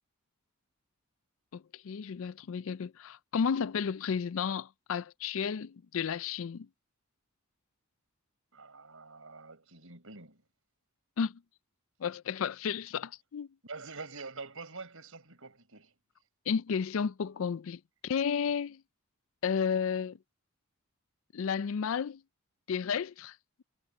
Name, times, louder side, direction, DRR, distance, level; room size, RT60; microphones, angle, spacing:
voice 1, 1.5-6.7 11.2-11.4 12.0-13.5 16.5-18.8 19.4-20.2 21.3-22.2 22.7-23.4, left 6 dB, 65° left, 0.4 m, -32 dB
voice 2, 8.5-10.4 13.6-15.9, right 4 dB, 70° right, 4.5 m, -46 dB
head